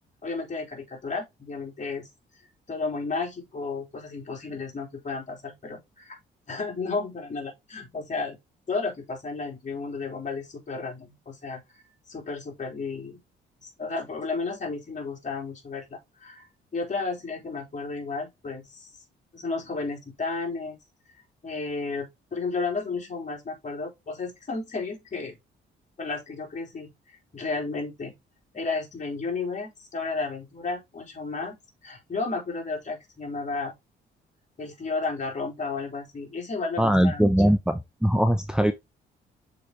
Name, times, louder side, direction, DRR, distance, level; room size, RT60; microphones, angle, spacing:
voice 1, 0.2-2.1 2.4-6.2 6.5-8.4 8.7-13.2 13.6-16.5 16.7-18.9 19.3-20.8 21.4-25.4 26.0-26.9 27.3-28.1 28.5-33.7 34.6-37.3, left 4 dB, 40° left, 3.6 m, -33 dB
voice 2, 36.8-38.7, equal, 5° right, 0.9 m, -21 dB
6.6 x 5.0 x 4.0 m
cardioid pair, 90°, 20 cm